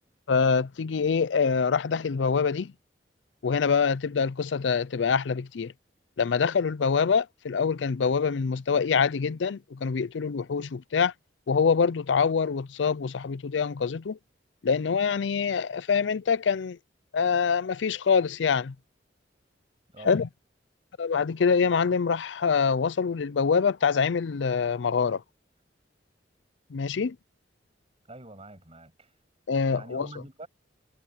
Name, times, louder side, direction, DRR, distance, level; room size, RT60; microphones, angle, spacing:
voice 1, 0.3-2.7 3.4-5.7 6.2-11.1 11.5-14.2 14.6-16.8 17.1-18.7 20.1-20.3 21.0-25.2 26.7-27.2 29.5-30.1, left 5 dB, 85° left, 0.5 m, -25 dB
voice 2, 19.9-20.2 28.1-29.1 29.7-30.5, right 1 dB, 35° right, 7.7 m, -45 dB
head